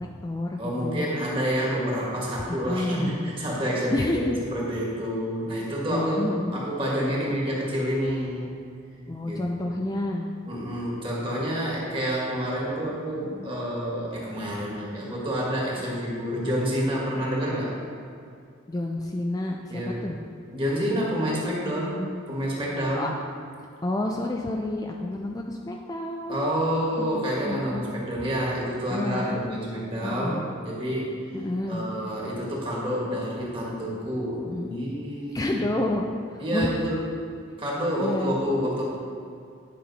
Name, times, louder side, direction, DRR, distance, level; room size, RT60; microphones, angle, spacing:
voice 1, 0.0-1.1 2.5-3.2 3.9-4.4 5.9-6.6 9.1-10.3 18.7-20.2 23.0-23.1 23.8-26.5 27.1-27.9 28.9-29.4 30.0-30.4 31.3-31.8 34.5-34.7 35.3-36.7 38.0-38.3, left 1 dB, 20° left, 1 dB, 0.4 m, -29 dB
voice 2, 0.6-6.2 6.5-8.4 9.2-9.7 10.5-17.7 19.7-20.0 20.5-23.1 26.3-31.1 31.7-35.6 36.4-37.0 37.6-38.8, equal, 25° right, -4 dB, 1.7 m, -28 dB
10.5 x 5.8 x 4.1 m, 2.3 s
head